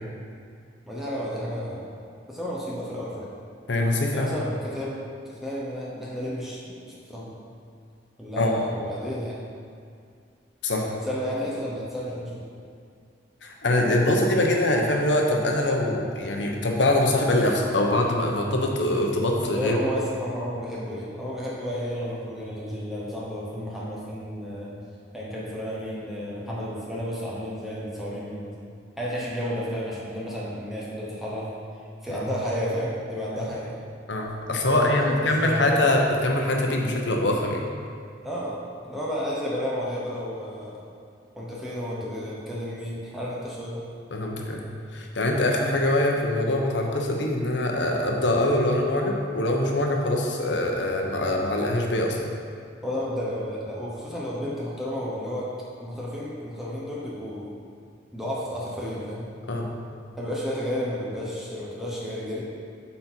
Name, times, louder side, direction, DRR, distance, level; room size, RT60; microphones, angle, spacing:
voice 1, 0.9-1.9 2.3-3.3 4.1-5.0 5.3-6.7 7.1-7.3 8.2-9.4 10.8-12.4 19.6-24.8 25.1-28.6 29.0-31.5 32.0-33.7 34.7-35.8 38.2-38.6 38.9-40.8 41.4-43.8 52.8-55.5 55.8-57.5 58.1-59.3 60.2-62.4, equal, ahead, -7 dB, 0.9 m, -32 dB
voice 2, 3.7-4.3 8.4-8.5 10.6-10.9 13.4-19.8 32.1-32.3 34.1-37.6 44.1-44.6 44.9-52.2 59.5-59.7, left 1 dB, 75° left, 1 dB, 0.9 m, -23 dB
7.8 x 4.3 x 4.4 m, 2.3 s
head